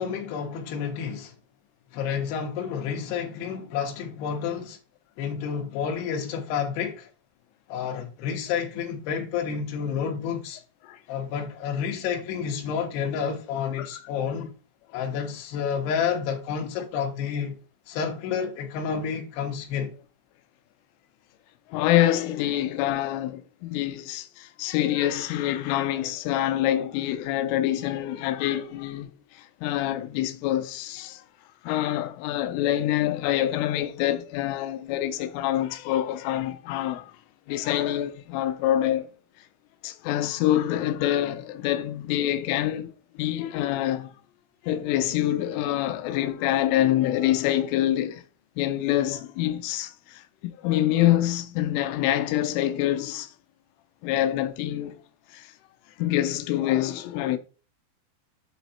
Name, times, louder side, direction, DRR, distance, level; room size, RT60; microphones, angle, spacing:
voice 1, 0.0-1.3 1.9-4.8 5.2-7.1 7.7-10.6 11.1-14.5 14.9-17.6 17.9-19.9, left 7 dB, 70° left, 3.1 m, -30 dB
voice 2, 21.7-31.2 31.6-37.1 37.5-39.1 39.8-44.1 44.6-48.2 48.6-53.3 54.0-55.0 55.3-55.5 56.0-57.4, left 13 dB, 90° left, 3.1 m, -26 dB
7.8 x 4.1 x 4.2 m
omnidirectional pair, 5.4 m